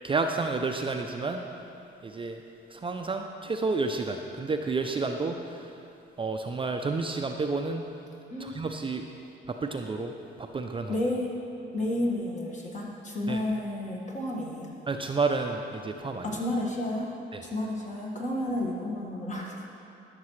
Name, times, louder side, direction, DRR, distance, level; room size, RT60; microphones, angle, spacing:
voice 1, 0.0-1.4 2.0-2.4 2.7-5.8 6.2-7.8 8.4-9.0 9.5-10.1 10.4-10.9 13.3-13.4 14.9-16.4 17.3-17.4, right 3 dB, 25° right, 4 dB, 0.4 m, -30 dB
voice 2, 10.9-11.3 11.7-14.7 16.2-17.1 17.4-19.7, left 1 dB, 40° left, -2 dB, 1.7 m, -31 dB
13.5 x 6.7 x 3.2 m, 2.7 s
cardioid pair, 90°, 20 cm